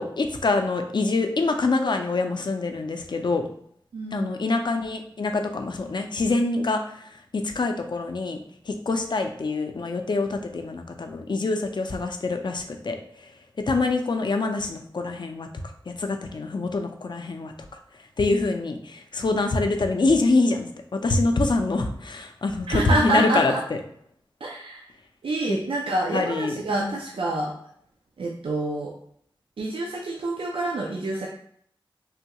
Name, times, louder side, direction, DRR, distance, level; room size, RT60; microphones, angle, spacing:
voice 1, 0.0-3.5 4.1-6.8 7.3-8.4 8.7-13.0 13.7-15.5 15.9-17.5 18.2-23.5 25.5-25.6 26.1-26.9, left 3 dB, 55° left, 5 dB, 0.4 m, -25 dB
voice 2, 3.9-4.3 22.7-23.6 24.4-24.9 25.2-27.5 28.2-28.9 29.6-31.3, right 2 dB, 85° right, -1 dB, 0.4 m, -27 dB
3.4 x 2.3 x 2.8 m, 0.66 s
wide cardioid pair, 60°, 9 cm